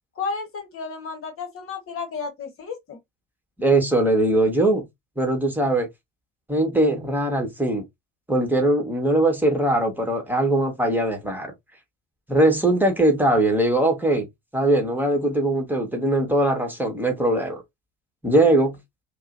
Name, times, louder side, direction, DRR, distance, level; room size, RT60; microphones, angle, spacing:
voice 1, 0.2-3.0, left 5 dB, 45° left, 1.2 m, -32 dB
voice 2, 3.6-4.9 5.2-5.9 6.5-7.8 8.3-11.5 12.3-14.3 14.5-17.6 18.2-18.8, right 1 dB, 5° right, 1.5 m, -21 dB
5.3 x 2.3 x 2.6 m
hypercardioid pair, 65°, 32 cm